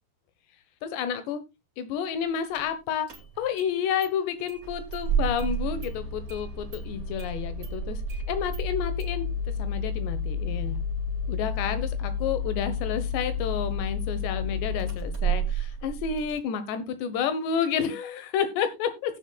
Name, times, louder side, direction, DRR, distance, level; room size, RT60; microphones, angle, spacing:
voice 1, 0.8-1.4 1.8-3.1 3.4-8.0 8.3-9.3 9.6-10.7 11.3-19.2, left 8 dB, 85° left, 11 dB, 3.4 m, -30 dB
Engine starting, 2.5-2.6 3.1-3.7 4.0-4.1 4.5-16.4, equal, 35° right, 1.3 m, -30 dB
17.0 x 7.6 x 2.3 m, 0.21 s
omnidirectional pair, 4.8 m